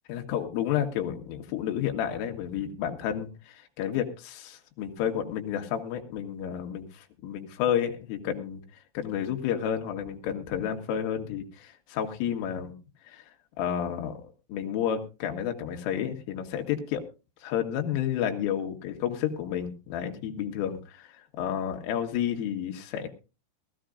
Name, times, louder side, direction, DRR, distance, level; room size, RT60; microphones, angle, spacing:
voice 1, 0.1-8.6 9.0-12.8 13.1-13.2 13.6-14.2 14.5-17.1 17.4-23.2, left 9 dB, 85° left, 4 dB, 4.1 m, -31 dB
20.5 x 14.0 x 2.5 m, 0.31 s
omnidirectional pair, 5.7 m